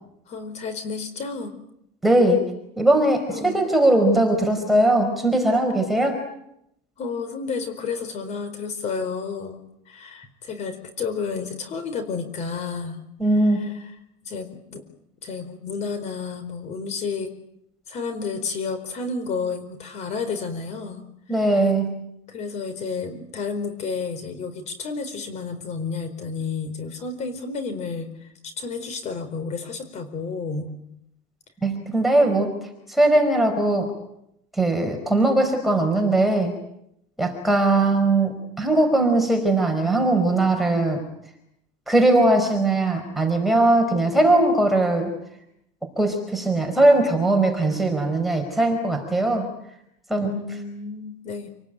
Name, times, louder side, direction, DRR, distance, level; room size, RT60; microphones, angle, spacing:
voice 1, 0.3-1.5 3.3-3.6 7.0-13.0 13.5-13.8 14.2-14.8 15.2-17.3 17.9-21.0 21.3-21.6 22.3-28.3 28.6-30.7 50.2-51.5, left 5 dB, 45° left, 10 dB, 4.4 m, -31 dB
voice 2, 2.0-2.4 2.8-6.2 13.2-13.6 21.3-21.9 31.6-33.9 34.5-36.5 37.2-41.0 41.9-45.1 46.0-49.5 50.1-50.3, right 2 dB, ahead, 2 dB, 4.7 m, -20 dB
28.5 x 19.5 x 9.1 m, 0.78 s
cardioid pair, 135°, 17 cm